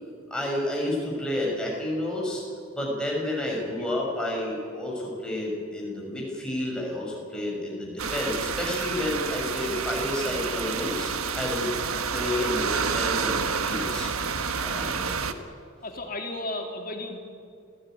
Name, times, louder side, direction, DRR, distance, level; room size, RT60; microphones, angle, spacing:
voice 1, 0.3-2.4 2.7-11.7 12.1-14.1 14.6-15.3, left 1 dB, 5° left, -3 dB, 6.3 m, -30 dB
sound 1, 8.0-15.3, right 5 dB, 90° right, 1.4 m, -29 dB
voice 2, 15.8-17.2, left 2 dB, 40° left, 3 dB, 3.0 m, -35 dB
27.5 x 17.5 x 9.2 m, 2.4 s
head